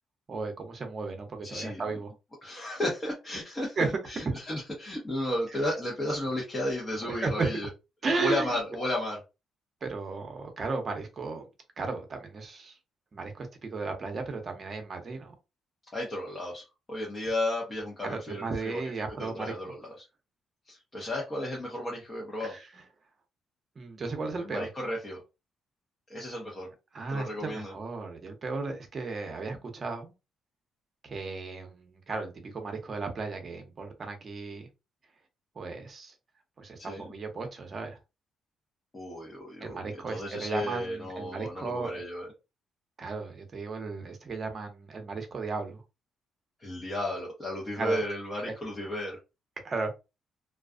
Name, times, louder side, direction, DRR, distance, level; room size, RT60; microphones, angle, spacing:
voice 1, 0.3-2.1 3.8-3.9 7.0-7.5 8.0-8.6 9.8-11.4 11.8-12.8 13.1-15.3 18.1-19.7 21.0-21.1 22.4-22.8 23.8-24.7 26.9-30.1 31.0-34.7 35.6-36.1 36.6-38.0 39.6-42.0 43.0-45.8 47.8-48.0 48.4-48.5 49.6-49.9, right 4 dB, 40° right, 0.8 m, -35 dB
voice 2, 1.4-1.8 2.4-7.7 8.2-9.2 15.9-18.8 19.2-20.0 20.7-22.6 24.4-25.2 26.1-26.7 27.1-27.7 36.8-37.1 38.9-42.3 46.6-49.2, left 1 dB, 25° left, 0.9 m, -33 dB
2.4 x 2.3 x 2.4 m
cardioid pair, 90°, 0 cm